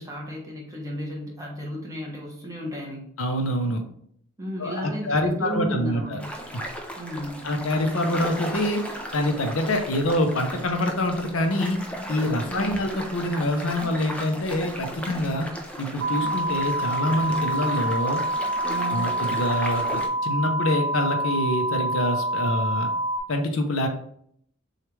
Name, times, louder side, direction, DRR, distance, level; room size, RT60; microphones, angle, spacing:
voice 1, 0.0-3.1 4.4-6.3 7.0-7.5 12.5-12.8 18.6-19.1, equal, 15° right, -2 dB, 1.0 m, -33 dB
voice 2, 3.2-3.8 4.6-6.2 7.4-8.8 9.1-11.8 12.1-15.5 15.8-18.2 18.8-22.9 23.3-23.9, left 1 dB, 75° left, 5 dB, 0.7 m, -25 dB
sound 1, 6.2-20.1, equal, 5° left, 0.5 m, -36 dB
sound 2, 16.0-23.2, right 1 dB, 75° right, 1.2 m, -26 dB
6.4 x 2.4 x 3.2 m, 0.67 s
head